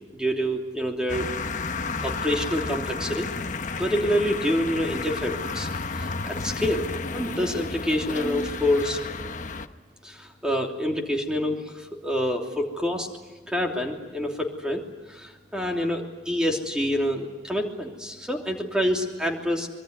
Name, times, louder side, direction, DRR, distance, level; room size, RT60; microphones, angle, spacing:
voice 1, 0.1-1.3 2.0-3.3 3.8-6.9 7.1-9.0 10.0-13.1 13.5-14.8 15.1-19.7, equal, 5° right, 1 dB, 3.1 m, -27 dB
sound 1, 1.1-9.7, left 4 dB, 45° left, 1.1 m, -32 dB
25.5 x 22.5 x 9.6 m, 1.3 s
head